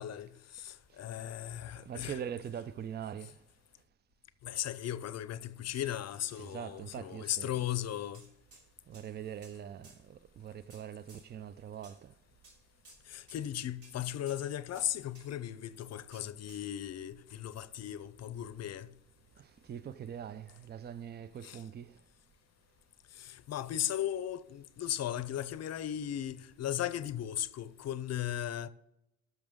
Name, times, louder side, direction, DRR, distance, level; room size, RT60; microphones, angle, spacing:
voice 1, 0.0-2.2 4.4-8.2 13.1-18.9 21.4-21.6 23.2-28.7, left 11 dB, 60° left, 0.6 m, -37 dB
voice 2, 1.7-3.4 6.4-7.6 8.9-12.1 19.4-22.0, right 9 dB, 35° right, 0.4 m, -43 dB
sound 1, 5.7-6.5 7.5-7.6 8.1-8.6 8.9-9.5 9.8-10.0 10.7-11.3 11.8-12.0 12.4-12.6 12.8-13.0 13.3-13.5 13.8-14.0 14.2-14.4 14.7-15.3 16.1-16.6, right 3 dB, 90° right, 3.0 m, -58 dB
14.0 x 6.3 x 3.6 m
cardioid pair, 90°, 30 cm